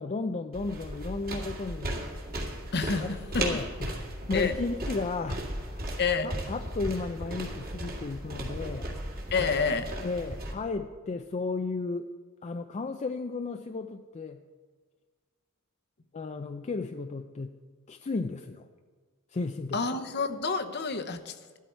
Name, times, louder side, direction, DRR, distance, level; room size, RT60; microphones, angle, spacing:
voice 1, 0.0-2.0 3.0-3.1 3.4-4.0 4.3-5.8 6.2-9.0 10.0-12.1 12.4-14.4 16.1-17.6 17.9-18.7 19.3-19.8, left 3 dB, 30° left, 6 dB, 0.4 m, -34 dB
sound 1, 0.5-10.5, right 1 dB, 45° right, 2.2 m, -36 dB
voice 2, 2.7-3.6 4.3-4.5 6.0-6.3 9.3-9.9 19.7-21.6, left 5 dB, 50° left, 9 dB, 0.9 m, -29 dB
14.5 x 12.5 x 4.5 m, 1.5 s
head